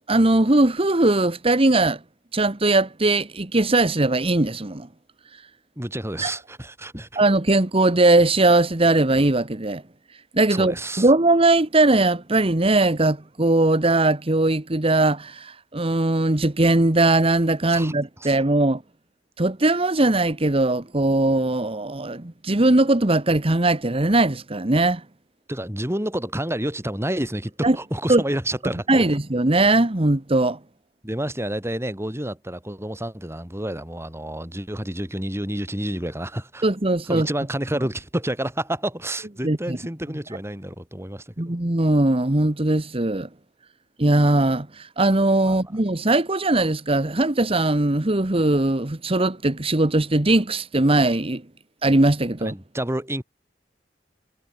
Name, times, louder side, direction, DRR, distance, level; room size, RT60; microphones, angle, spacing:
voice 1, 0.1-2.0 2.3-4.9 6.2-6.3 7.2-9.8 10.3-18.8 19.4-25.0 27.6-27.8 28.1-28.2 28.9-30.6 36.6-37.3 39.4-39.8 41.4-43.3 44.0-51.4 51.8-52.5, right 2 dB, 30° right, 1.3 m, -20 dB
voice 2, 5.8-7.2 10.5-11.1 17.7-17.9 18.2-18.4 25.5-29.1 31.0-36.7 37.1-41.5 45.5-45.6 52.4-53.2, right 1 dB, 15° right, 5.5 m, -29 dB
head